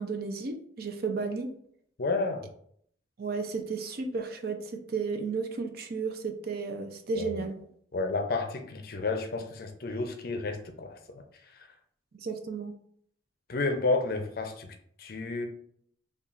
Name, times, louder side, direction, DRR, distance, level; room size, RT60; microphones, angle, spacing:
voice 1, 0.0-1.5 3.2-7.6 12.2-12.7, right 4 dB, 50° right, 6 dB, 0.5 m, -33 dB
voice 2, 2.0-2.5 7.2-7.4 7.9-11.0 11.5-11.7 13.5-15.5, left 3 dB, 50° left, 5 dB, 0.5 m, -31 dB
5.6 x 2.3 x 2.4 m, 0.65 s
head